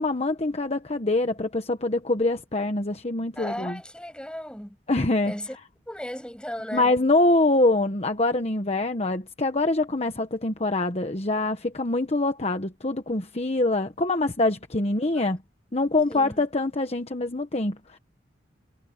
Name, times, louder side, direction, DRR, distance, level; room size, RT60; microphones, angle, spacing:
voice 1, 0.0-3.8 4.9-5.3 6.7-15.4 15.7-18.0, left 2 dB, 35° left, 1.2 m, -24 dB
voice 2, 3.4-4.8 5.2-5.6 5.9-6.9 15.2-15.3 16.1-16.4, equal, 5° left, 7.8 m, -36 dB
head